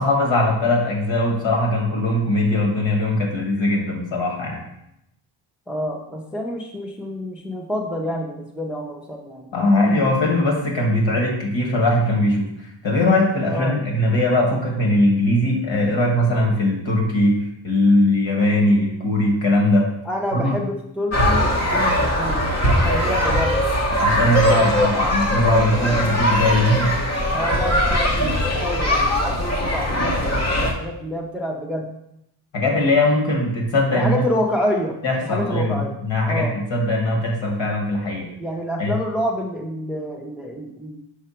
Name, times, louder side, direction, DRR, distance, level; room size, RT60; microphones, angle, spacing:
voice 1, 0.0-4.6 9.5-19.9 20.3-20.6 24.0-26.9 32.5-34.2 35.0-38.3 38.8-38.9, left 1 dB, 65° left, 1 dB, 1.8 m, -20 dB
voice 2, 5.7-9.5 13.5-13.8 20.0-23.7 25.8-26.1 27.3-31.9 33.9-35.9 36.2-36.5 38.4-41.0, left 1 dB, ahead, 1 dB, 0.5 m, -28 dB
sound 1, 21.1-30.7, equal, 30° left, 0.9 m, -20 dB
5.9 x 4.7 x 4.3 m, 0.80 s
wide cardioid pair, 150°, 49 cm